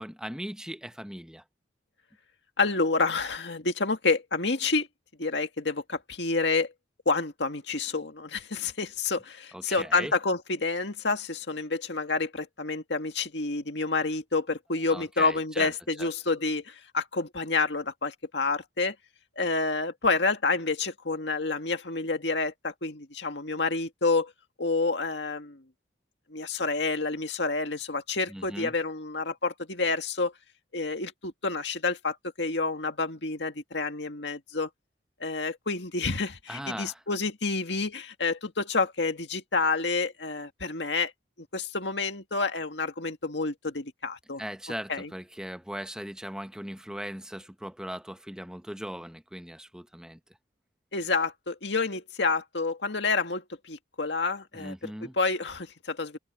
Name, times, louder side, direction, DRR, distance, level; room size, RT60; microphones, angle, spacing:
voice 1, 0.0-1.4 9.5-10.1 14.9-15.7 16.0-16.1 28.3-28.7 36.5-37.0 44.4-50.2 54.5-55.1, equal, 5° right, 0.9 m, -39 dB
voice 2, 2.6-4.9 5.2-6.7 7.1-19.0 19.4-24.3 24.6-25.6 26.3-30.3 30.7-34.7 35.2-41.1 41.5-44.4 44.9-45.1 50.9-56.2, left 3 dB, 70° left, 2.0 m, -29 dB
head